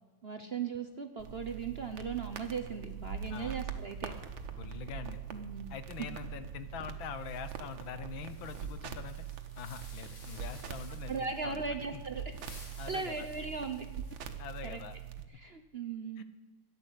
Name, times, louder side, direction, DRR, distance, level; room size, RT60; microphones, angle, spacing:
voice 1, 0.2-4.1 5.3-5.7 6.0-6.1 11.1-12.2 12.9-13.9 14.6-14.8 15.3-16.2, right 5 dB, 45° right, 7 dB, 0.8 m, -38 dB
sound 1, 1.2-15.2, right 9 dB, 90° right, 1.9 m, -43 dB
voice 2, 4.6-5.2 5.7-9.2 9.6-11.6 11.9-12.0 12.8-13.3 14.4-15.0 16.2-16.3, left 8 dB, 85° left, 12 dB, 1.8 m, -44 dB
sound 2, 7.1-11.3 12.1-14.5, left 2 dB, 35° left, 3.0 m, -56 dB
13.5 x 10.5 x 8.0 m, 1.3 s
omnidirectional pair, 2.1 m